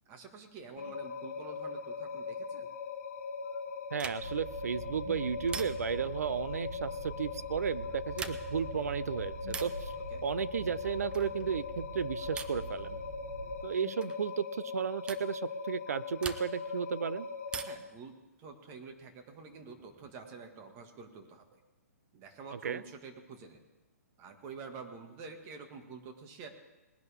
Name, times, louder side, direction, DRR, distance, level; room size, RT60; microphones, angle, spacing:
voice 1, 0.1-2.7 10.1-10.2 17.7-18.1 18.4-21.6 22.1-23.6 24.2-26.5, right 5 dB, 30° right, 5 dB, 1.9 m, -48 dB
sound 1, 0.8-17.8, left 5 dB, 65° left, 1.8 m, -40 dB
sound 2, 3.9-4.5 5.5-6.1 8.0-8.7 9.5-9.9 11.1-11.5 12.4-12.7 14.0-14.2 15.1-15.3 16.2-16.8 17.5-18.0 19.4-20.1, right 5 dB, 10° right, 0.6 m, -43 dB
voice 2, 3.9-9.9 10.2-13.0 13.6-17.3 22.6-22.8, right 7 dB, 70° right, 17 dB, 0.6 m, -34 dB
sound 3, 4.2-13.6, right 3 dB, 50° right, 3.8 m, -45 dB
20.0 x 10.5 x 3.6 m, 1.0 s
hypercardioid pair, 130°, 9 cm